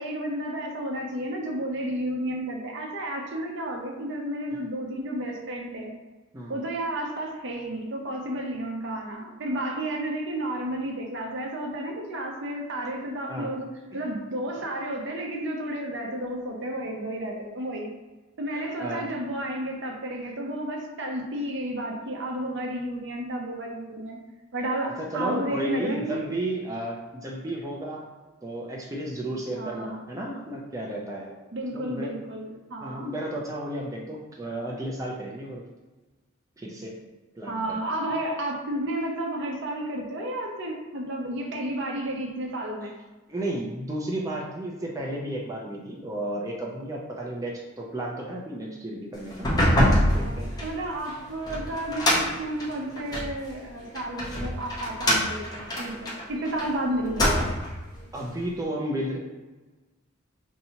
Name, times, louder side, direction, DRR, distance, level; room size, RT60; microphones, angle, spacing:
voice 1, 0.0-5.9 6.5-17.9 18.4-24.2 24.5-26.3 29.6-30.1 31.5-33.1 37.5-42.9 50.2-57.5, right 1 dB, 60° right, 1 dB, 0.6 m, -32 dB
voice 2, 13.3-13.6 13.9-14.0 18.5-19.1 25.0-28.1 28.4-31.4 31.7-32.2 32.8-35.6 36.6-36.9 37.3-37.8 43.3-49.5 49.8-50.6 58.1-59.2, right 1 dB, 15° right, -3 dB, 0.4 m, -33 dB
sound 1, 49.3-53.4 53.9-56.7 57.0-57.8, equal, 20° left, 0.7 m, -25 dB
4.4 x 2.7 x 2.8 m, 1.2 s
head